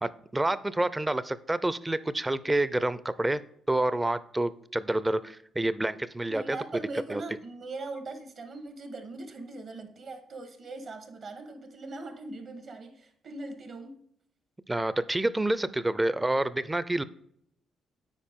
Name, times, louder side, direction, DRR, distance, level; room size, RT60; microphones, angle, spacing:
voice 1, 0.0-3.4 3.7-6.6 7.1-7.2 14.7-17.0, right 1 dB, 15° right, 16 dB, 0.4 m, -28 dB
voice 2, 6.3-14.0, right 2 dB, 55° right, 8 dB, 1.4 m, -40 dB
8.9 x 4.7 x 3.6 m, 0.70 s
cardioid pair, 90°, 0 cm